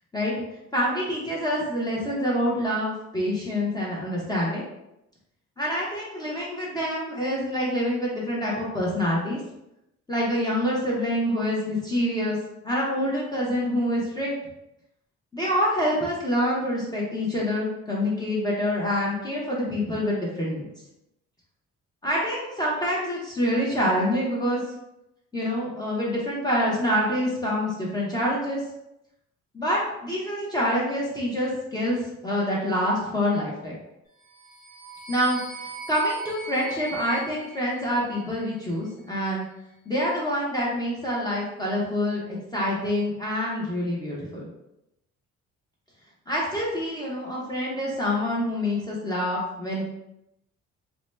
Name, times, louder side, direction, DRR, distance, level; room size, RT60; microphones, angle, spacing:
voice 1, 0.7-4.6 5.6-9.4 10.1-12.4 12.6-14.3 15.3-20.7 22.0-24.6 25.3-28.6 29.5-33.8 35.1-35.4 35.9-39.5 39.9-44.4 46.3-49.8, equal, 15° left, -5 dB, 0.8 m, -26 dB
sound 1, 34.2-38.6, right 2 dB, 85° left, 0.8 m, -40 dB
2.8 x 2.1 x 3.2 m, 0.86 s
cardioid pair, 90°, 30 cm